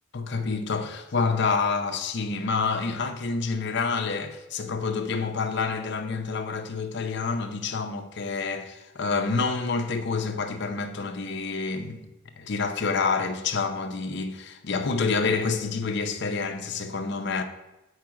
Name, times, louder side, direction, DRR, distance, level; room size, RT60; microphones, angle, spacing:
voice 1, 0.1-12.1 12.4-17.4, left 4 dB, 50° left, 0.6 m, -28 dB
7.6 x 4.7 x 4.8 m
head